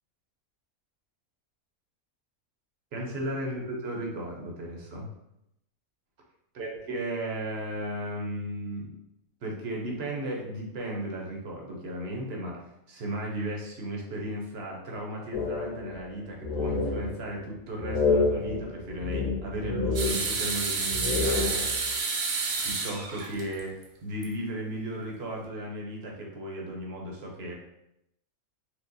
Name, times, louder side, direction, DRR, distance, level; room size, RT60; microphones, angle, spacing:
voice 1, 2.9-5.1 6.5-8.9 9.4-12.6 12.9-21.7 22.6-27.5, right 1 dB, 55° right, -1 dB, 0.8 m, -35 dB
sound 1, 15.3-16.1 16.4-17.4 17.8-20.6 20.9-21.9, left 3 dB, 70° left, 1.2 m, -29 dB
sound 2, 20.0-23.8 24.2-24.3 25.4-25.5, right 4 dB, 80° right, 1.0 m, -30 dB
4.4 x 2.1 x 2.6 m, 0.81 s
omnidirectional pair, 1.5 m